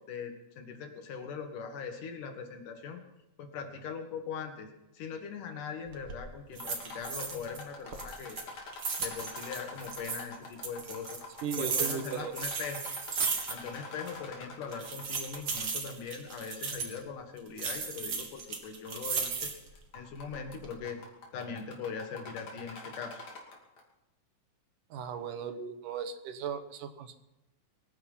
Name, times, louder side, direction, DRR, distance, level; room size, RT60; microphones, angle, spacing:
voice 1, 0.0-3.0 3.4-8.4 9.0-11.3 11.6-12.8 13.5-19.5 19.9-21.0 21.3-23.2, left 6 dB, 85° left, 5 dB, 3.3 m, -41 dB
sound 1, 5.9-6.2 6.6-7.6 7.9-10.2 10.6-13.8 14.1-14.2 14.7-17.0 17.6-19.7 20.2-20.7, right 5 dB, 45° right, 2.5 m, -35 dB
sound 2, 6.5-15.6 15.9-16.0 16.7-16.8 17.4-17.5 18.6-18.9 19.2-19.5 19.8-23.8, left 3 dB, 60° left, 3.9 m, -46 dB
voice 2, 11.4-12.3 24.9-27.1, right 7 dB, 85° right, 9 dB, 2.7 m, -37 dB
23.0 x 10.0 x 5.7 m, 0.94 s
omnidirectional pair, 3.6 m